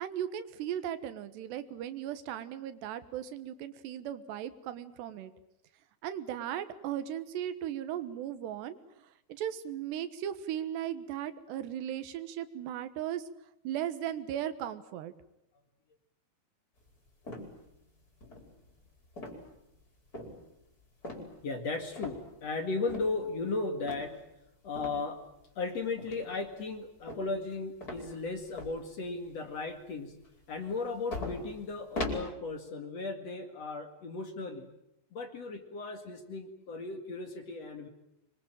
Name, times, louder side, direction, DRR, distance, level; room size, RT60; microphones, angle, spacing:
voice 1, 0.0-5.3 6.0-8.8 9.3-13.2 13.7-15.1, right 10 dB, 90° right, 12 dB, 3.5 m, -37 dB
sound 1, 17.2-17.8 18.2-18.7 19.1-19.6 20.1-20.4 21.0-21.4 21.9-22.5 22.9-23.1 23.8-24.1 24.8-25.0 26.0-26.5 27.1-27.5 27.8-28.8 29.2-29.3 30.7-30.8 31.1-32.2, left 2 dB, 20° left, 5.0 m, -39 dB
voice 2, 21.4-24.2 24.6-25.2 25.6-30.2 30.5-34.7 35.1-37.9, left 3 dB, 45° left, 6 dB, 2.7 m, -36 dB
25.5 x 23.5 x 9.0 m, 0.81 s
omnidirectional pair, 4.7 m